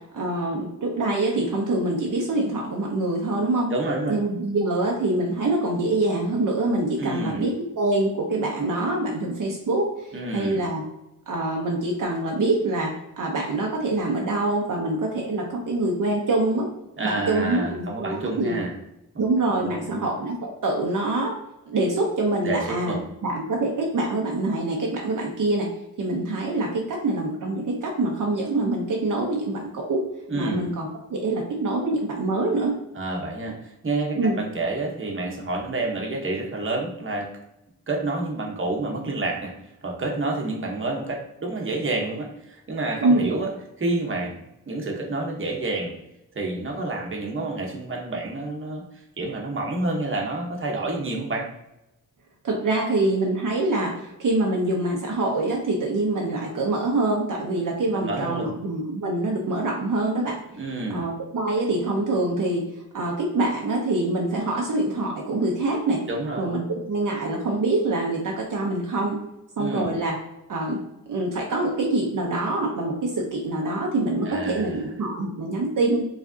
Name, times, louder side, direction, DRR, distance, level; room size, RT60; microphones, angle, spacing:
voice 1, 0.1-3.7 4.1-9.9 10.3-10.8 11.3-16.7 17.0-18.6 19.2-21.3 21.7-23.0 23.2-25.7 26.0-30.0 30.3-32.7 34.1-34.4 43.0-43.3 52.4-60.4 60.9-62.6 62.9-66.0 66.4-69.2 69.6-70.2 70.5-70.8 71.1-76.0, right 2 dB, 60° right, -1 dB, 0.8 m, -25 dB
voice 2, 3.7-4.2 7.0-7.4 10.1-10.6 17.0-18.7 19.5-20.1 22.4-23.0 30.3-30.7 32.9-37.4 37.9-39.6 39.8-43.5 43.8-45.9 46.3-48.8 49.2-51.5 57.9-58.5 60.5-61.1 66.1-66.5 69.6-69.9 74.3-74.8, right 2 dB, 35° right, 0 dB, 1.0 m, -29 dB
4.8 x 3.3 x 2.7 m, 0.89 s
wide cardioid pair, 95°, 35 cm